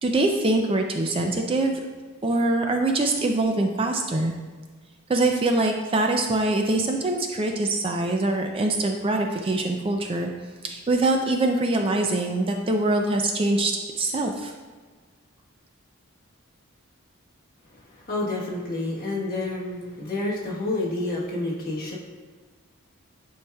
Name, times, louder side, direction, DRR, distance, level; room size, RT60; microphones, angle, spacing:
voice 1, 0.0-1.7 2.2-4.3 5.1-10.3 10.6-13.7 14.0-14.5, right 2 dB, 25° right, 3 dB, 0.4 m, -23 dB
voice 2, 17.7-22.0, left 2 dB, 45° left, -4 dB, 1.3 m, -29 dB
9.6 x 4.7 x 2.3 m, 1.4 s
head